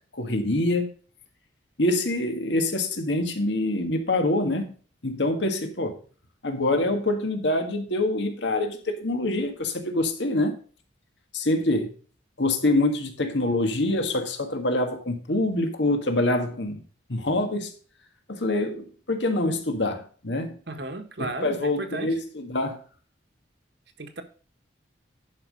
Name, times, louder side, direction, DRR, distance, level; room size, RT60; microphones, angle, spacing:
voice 1, 0.1-0.9 1.8-4.7 5.0-6.0 6.4-10.6 11.3-11.9 12.4-16.8 17.1-17.7 18.3-20.6 21.2-22.8, left 2 dB, 70° left, 1.7 m, -25 dB
voice 2, 20.7-22.1 24.0-24.2, right 2 dB, 60° right, 1.4 m, -34 dB
11.0 x 5.8 x 5.2 m
head